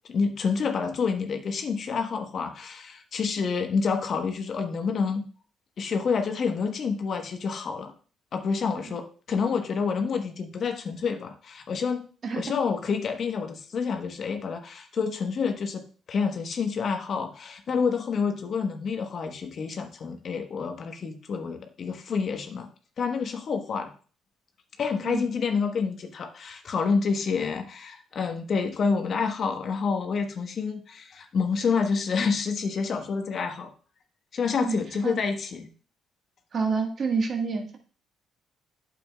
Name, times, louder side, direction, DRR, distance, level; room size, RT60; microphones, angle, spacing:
voice 1, 0.1-5.3 5.8-7.9 8.3-9.0 9.3-12.1 12.4-22.7 23.0-23.9 24.8-33.7 34.3-35.7, left 5 dB, 55° left, 5 dB, 1.1 m, -28 dB
voice 2, 36.5-37.8, right 4 dB, 50° right, 4 dB, 1.5 m, -28 dB
8.7 x 6.9 x 2.3 m, 0.39 s
supercardioid pair, 65°, 0 cm